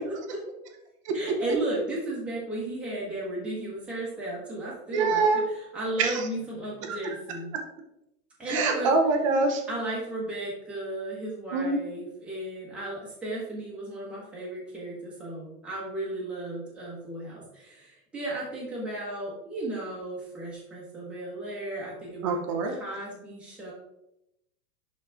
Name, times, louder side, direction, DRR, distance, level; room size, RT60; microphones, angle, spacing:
voice 1, 1.1-7.5 8.4-8.9 9.7-23.7, right 1 dB, ahead, -7 dB, 1.2 m, -35 dB
voice 2, 4.9-5.4 6.0-6.2 6.9-7.0 8.5-9.6 11.5-11.8 22.2-22.7, right 3 dB, 20° right, 3 dB, 0.6 m, -24 dB
10.5 x 4.1 x 3.5 m, 0.84 s
supercardioid pair, 180°, 44 cm